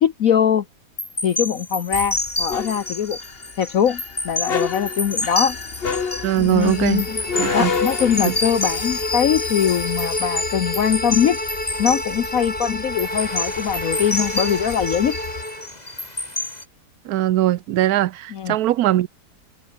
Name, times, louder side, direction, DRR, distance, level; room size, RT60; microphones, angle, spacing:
voice 1, 0.0-0.6 1.2-3.2 3.6-5.6 6.4-7.2 7.5-11.4 11.8-15.2 18.3-18.6, left 8 dB, 60° left, 1.3 m, -22 dB
sound 1, 1.0-16.6, left 2 dB, 25° left, 3.7 m, -29 dB
sound 2, 1.9-15.4, left 5 dB, 40° left, 1.4 m, -30 dB
voice 2, 6.2-7.0 7.3-7.7 8.2-8.3 17.1-19.1, right 14 dB, 70° right, 1.1 m, -20 dB
Bowed string instrument, 6.6-15.7, equal, 5° left, 3.6 m, -30 dB
omnidirectional pair, 1.7 m